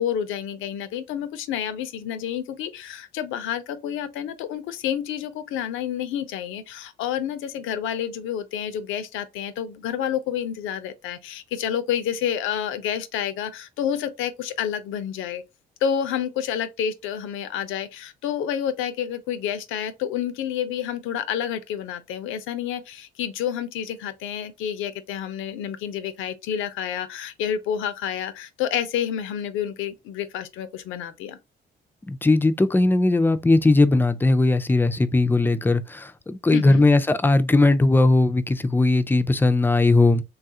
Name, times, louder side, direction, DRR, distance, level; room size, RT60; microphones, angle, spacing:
voice 1, 0.0-15.4 15.8-31.4 36.5-36.9, left 9 dB, 90° left, 0.5 m, -29 dB
voice 2, 32.1-40.2, left 2 dB, 10° left, 0.3 m, -19 dB
3.3 x 2.3 x 2.6 m
cardioid pair, 90°, 20 cm